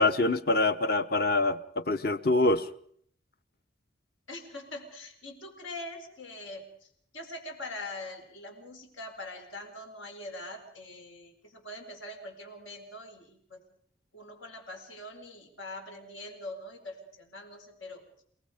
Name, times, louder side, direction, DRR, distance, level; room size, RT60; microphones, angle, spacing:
voice 1, 0.0-2.7, left 2 dB, 50° left, 11 dB, 1.0 m, -25 dB
voice 2, 4.3-6.9 7.1-13.6 14.1-18.0, left 2 dB, 90° left, 4 dB, 4.5 m, -43 dB
29.0 x 19.0 x 5.1 m, 0.62 s
head